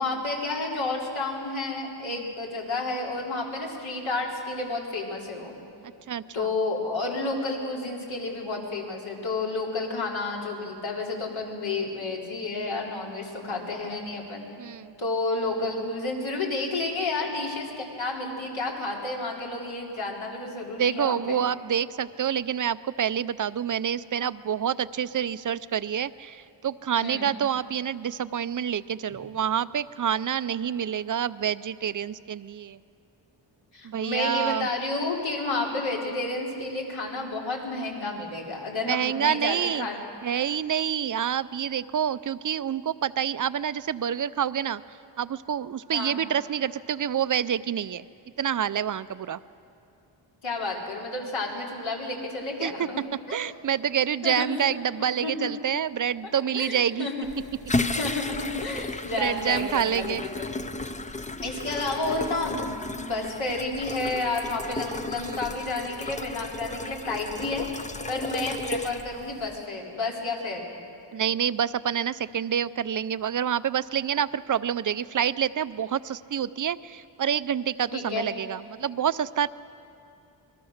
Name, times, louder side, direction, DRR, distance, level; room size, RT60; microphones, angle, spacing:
voice 1, 0.0-5.6 6.3-14.4 15.0-21.4 27.0-27.3 33.7-40.0 45.9-46.2 50.4-53.4 54.2-54.5 55.2-55.5 56.5-57.3 58.0-60.5 61.4-70.7 77.9-78.3, left 3 dB, 80° left, -2 dB, 3.9 m, -31 dB
voice 2, 6.1-6.5 14.6-14.9 20.8-32.8 33.8-34.7 38.8-39.9 40.2-44.8 45.2-48.1 48.4-49.4 52.6-52.9 53.3-57.1 59.2-60.2 65.2-65.4 71.1-79.5, right 9 dB, 45° right, 15 dB, 0.4 m, -27 dB
sound 1, 57.2-69.6, left 2 dB, 15° left, 0.5 m, -34 dB
26.0 x 22.0 x 6.5 m, 2.6 s
wide cardioid pair, 165°, 46 cm